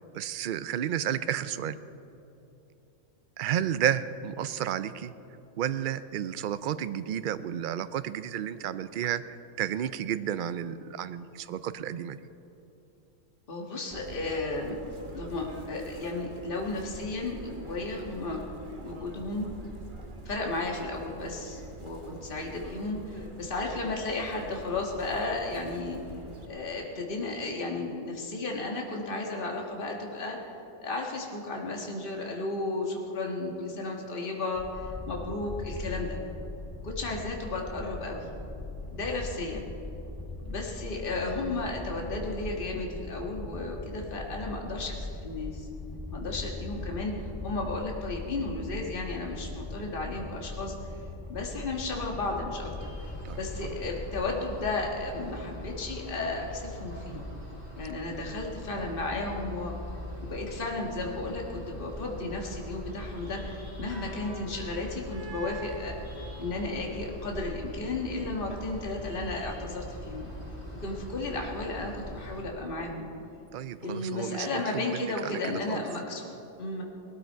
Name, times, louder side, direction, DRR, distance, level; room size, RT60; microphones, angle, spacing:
voice 1, 0.1-1.8 3.4-5.1 5.6-12.2 53.2-53.7 73.5-75.8, right 10 dB, 60° right, 13 dB, 0.5 m, -32 dB
voice 2, 13.5-14.8 15.1-18.4 18.8-19.5 20.3-26.0 26.5-30.4 30.8-36.2 36.8-38.3 38.9-39.6 40.4-45.7 46.1-50.7 51.3-52.9 53.4-57.2 57.8-59.7 60.2-66.0 66.4-70.3 70.8-73.1 73.8-76.8, left 2 dB, 45° left, 0 dB, 1.7 m, -34 dB
Chirp tweet, 13.9-26.5, right 2 dB, 40° right, 1.4 m, -45 dB
sound 1, 34.5-54.3, left 2 dB, 15° left, 2.3 m, -40 dB
sound 2, 52.8-72.4, equal, 90° left, 4.1 m, -41 dB
18.5 x 13.0 x 4.5 m, 2.9 s
omnidirectional pair, 1.3 m